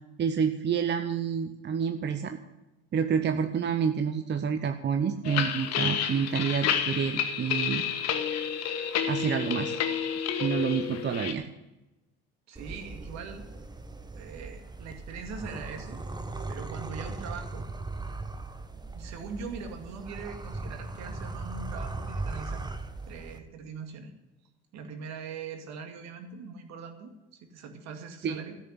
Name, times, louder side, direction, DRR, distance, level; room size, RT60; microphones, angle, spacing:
voice 1, 0.2-2.4 2.9-7.8 9.1-9.8 10.4-11.4 28.2-28.4, right 7 dB, 35° right, 7 dB, 0.9 m, -28 dB
sound 1, 5.2-11.3, left 8 dB, 60° left, 1.4 m, -30 dB
voice 2, 12.5-13.5 14.1-16.0 16.5-17.7 18.8-22.6 23.1-24.1 24.7-27.1 27.5-28.5, right 5 dB, 60° right, 5 dB, 2.3 m, -41 dB
sound 2, 12.6-23.4, right 3 dB, 15° right, 1.2 m, -38 dB
13.0 x 6.8 x 9.9 m, 1.0 s
hypercardioid pair, 65°, 30 cm